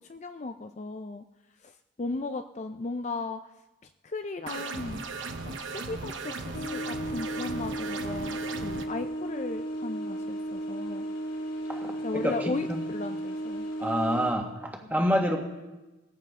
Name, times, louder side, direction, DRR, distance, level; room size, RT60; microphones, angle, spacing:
voice 1, 0.1-1.2 1.6-3.4 4.0-5.1 5.4-11.1 12.0-13.7 14.8-15.1, left 3 dB, 35° left, 7 dB, 0.4 m, -36 dB
sound 1, 4.5-8.8, right 3 dB, 75° right, 1.0 m, -37 dB
sound 2, 6.5-14.3, right 1 dB, 85° left, 3.6 m, -34 dB
voice 2, 11.7-12.8 13.8-15.4, equal, 10° right, 1 dB, 1.5 m, -28 dB
19.0 x 15.0 x 3.6 m, 1.1 s
head